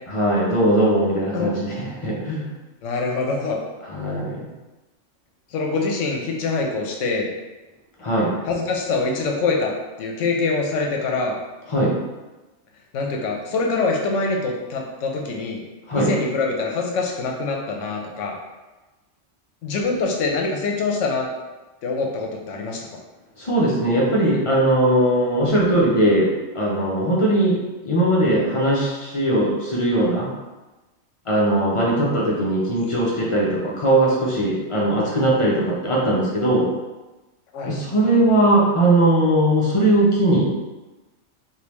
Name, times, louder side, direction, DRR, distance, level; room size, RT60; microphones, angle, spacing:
voice 1, 0.1-2.5 3.8-4.5 8.0-8.3 11.7-12.0 15.9-16.1 23.4-27.6 27.8-30.3 31.3-36.7 37.6-40.5, right 1 dB, 40° left, -4 dB, 0.5 m, -19 dB
voice 2, 2.8-3.6 5.5-7.3 8.5-9.7 10.0-11.4 12.9-15.6 15.9-18.4 19.6-21.3 21.8-23.0 37.5-37.8, left 3 dB, 80° left, 1 dB, 1.0 m, -24 dB
3.4 x 2.7 x 3.0 m, 1.1 s
omnidirectional pair, 1.3 m